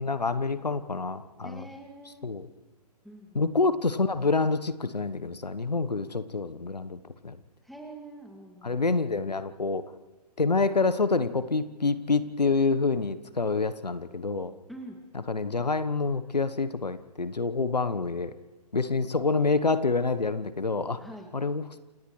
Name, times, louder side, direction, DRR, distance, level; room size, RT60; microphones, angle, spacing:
voice 1, 0.0-1.6 2.2-2.5 3.3-7.4 8.6-9.8 10.4-14.5 15.3-18.3 18.7-21.0 21.3-21.8, left 4 dB, 85° left, 13 dB, 1.2 m, -27 dB
voice 2, 1.4-2.3 3.0-3.6 7.6-9.0 14.7-15.0 21.0-21.3, right 1 dB, ahead, 1 dB, 2.4 m, -45 dB
29.0 x 28.0 x 3.2 m, 1.2 s
figure-of-eight pair, 130°, 20 cm